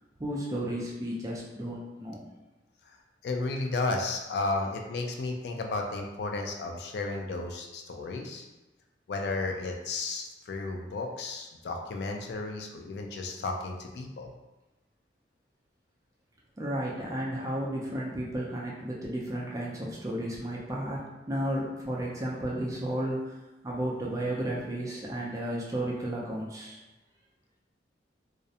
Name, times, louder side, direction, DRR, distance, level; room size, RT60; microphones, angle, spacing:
voice 1, 0.2-2.2 16.6-23.3 23.6-26.8, right 1 dB, 20° right, -4 dB, 0.3 m, -33 dB
voice 2, 3.2-8.4 9.1-14.3, left 3 dB, 65° left, 2 dB, 0.3 m, -33 dB
2.4 x 2.0 x 2.7 m, 1.0 s
head